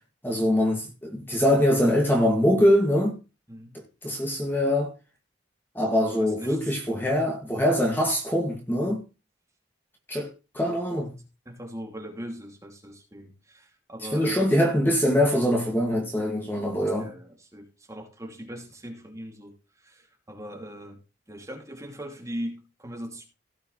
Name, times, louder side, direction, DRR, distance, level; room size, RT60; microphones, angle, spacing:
voice 1, 0.2-3.2 4.0-4.9 5.7-9.0 10.1-10.3 10.5-11.1 14.1-17.1, equal, 10° left, 2.2 m, -23 dB
voice 2, 3.5-3.8 6.1-6.7 11.4-14.6 17.0-21.0 21.3-23.2, equal, 15° right, 2.7 m, -40 dB
17.5 x 6.9 x 3.3 m
head